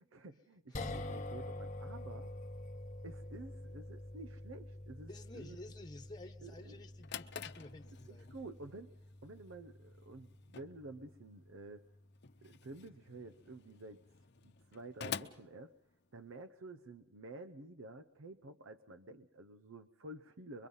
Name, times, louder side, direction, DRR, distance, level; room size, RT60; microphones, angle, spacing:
voice 1, 0.0-2.3 3.0-5.6 6.4-6.8 8.1-11.8 12.4-14.0 14.4-15.7 16.1-20.7, right 2 dB, 80° right, 8 dB, 0.7 m, -51 dB
sound 1, 0.7-13.1, left 1 dB, 40° left, 1.1 m, -48 dB
voice 2, 5.1-8.3, left 2 dB, 20° left, 5 dB, 1.3 m, -52 dB
Drawer open or close, 6.7-16.4, left 7 dB, 60° left, 0.8 m, -49 dB
24.0 x 23.0 x 5.5 m, 0.86 s
head